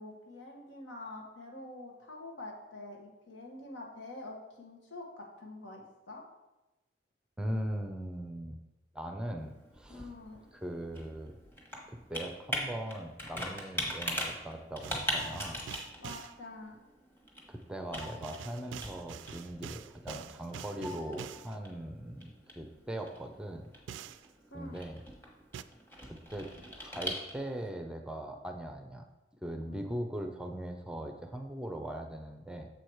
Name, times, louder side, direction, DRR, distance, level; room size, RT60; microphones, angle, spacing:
voice 1, 0.0-6.2 9.9-10.5 16.0-16.8 24.5-24.8 29.7-30.0, left 2 dB, 90° left, 0 dB, 1.4 m, -46 dB
voice 2, 7.4-8.6 8.9-10.1 10.5-11.4 11.9-15.7 17.5-23.7 24.5-25.0 26.1-26.5 26.8-29.1 29.4-32.7, right 1 dB, 5° right, 5 dB, 0.5 m, -40 dB
Computer keyboard, 9.4-27.7, equal, 10° left, 1.2 m, -42 dB
sound 1, 14.8-16.3 18.0-21.6 23.9-24.3 25.5-25.6, right 8 dB, 80° right, 0.3 m, -46 dB
7.0 x 4.7 x 4.6 m, 1.0 s
head